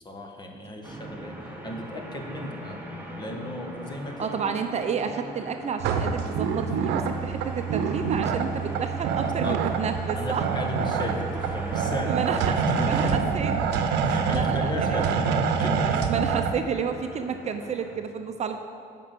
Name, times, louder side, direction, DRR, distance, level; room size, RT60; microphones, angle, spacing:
voice 1, 0.0-2.8 3.2-4.3 9.4-9.6 10.1-13.2 14.0-16.1, left 1 dB, 25° left, 2 dB, 1.5 m, -34 dB
sound 1, 0.8-18.0, right 1 dB, 10° right, 1.4 m, -41 dB
voice 2, 4.2-10.4 11.8-13.5 14.1-15.3 16.1-18.6, right 6 dB, 40° right, 6 dB, 0.7 m, -31 dB
sound 2, 5.8-16.5, right 6 dB, 90° right, 0.8 m, -26 dB
9.9 x 6.1 x 7.7 m, 2.3 s
cardioid pair, 110°, 17 cm